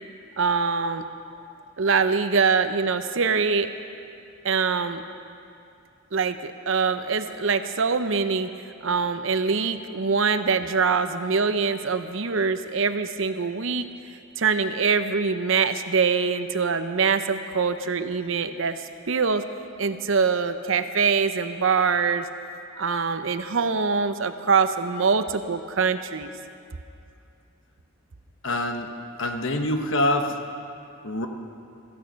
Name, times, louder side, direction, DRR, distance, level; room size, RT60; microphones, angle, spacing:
voice 1, 0.4-1.0 1.8-3.7 4.4-5.0 6.1-8.5 8.8-13.9 14.4-18.8 19.1-19.4 19.8-22.3 22.8-26.3, right 5 dB, 65° right, 10 dB, 0.7 m, -24 dB
voice 2, 28.4-28.9 29.2-30.4 31.0-31.3, left 1 dB, 65° left, 5 dB, 1.2 m, -25 dB
16.0 x 14.5 x 5.3 m, 2.5 s
head